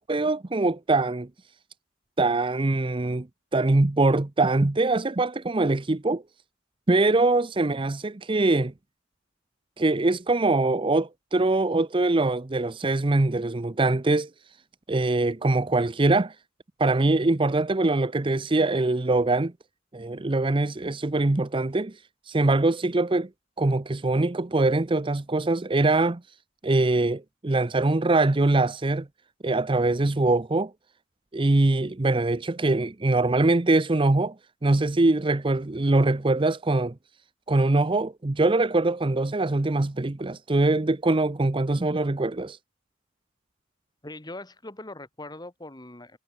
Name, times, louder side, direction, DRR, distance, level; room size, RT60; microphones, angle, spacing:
voice 1, 0.1-1.3 2.2-3.3 3.5-6.2 6.9-8.7 9.8-14.3 14.9-16.3 16.8-19.5 19.9-21.9 22.3-23.3 23.6-26.2 26.6-29.1 29.4-30.7 31.3-34.3 34.6-36.9 37.5-42.6, right 2 dB, 25° right, 0.6 m, -23 dB
voice 2, 44.0-46.2, left 2 dB, 20° left, 2.0 m, -41 dB
head